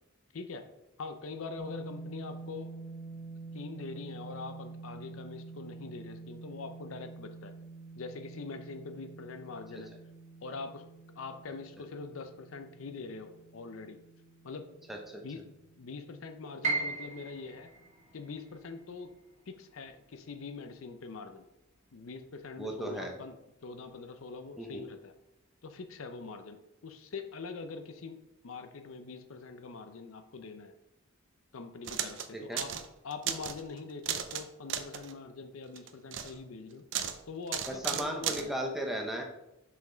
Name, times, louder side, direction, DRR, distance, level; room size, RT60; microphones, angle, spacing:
voice 1, 0.3-0.7 1.0-2.7 3.5-7.6 8.0-9.9 10.4-10.8 11.2-14.0 14.4-14.8 15.2-17.7 18.1-19.2 19.5-21.4 21.9-25.2 25.6-30.7 31.5-36.9 37.3-38.5, left 4 dB, 70° left, 8 dB, 0.5 m, -43 dB
sound 1, 1.6-17.5, right 3 dB, 35° left, 0.8 m, -48 dB
voice 2, 14.9-15.2 22.6-23.1 24.6-24.8 32.3-32.6 37.7-39.2, right 1 dB, ahead, 1 dB, 0.8 m, -36 dB
Piano, 16.6-22.6 22.9-24.0 24.5-24.6 25.3-25.6, right 3 dB, 35° right, 1.2 m, -39 dB
sound 2, 31.8-32.3 32.6-32.9 33.1-33.6 34.0-34.4 34.7-35.1 35.8-36.3 36.9-37.2 37.5-38.5, right 9 dB, 60° right, 0.5 m, -34 dB
5.7 x 5.1 x 3.9 m, 0.88 s
head